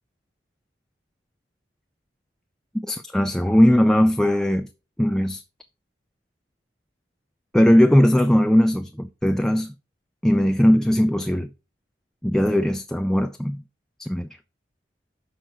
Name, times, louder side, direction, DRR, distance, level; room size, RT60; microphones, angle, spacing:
voice 1, 2.8-4.7 5.0-5.4 7.5-9.7 10.2-11.5 12.2-13.6 14.0-14.3, equal, 5° left, 0.3 m, -19 dB
6.3 x 6.3 x 4.5 m
head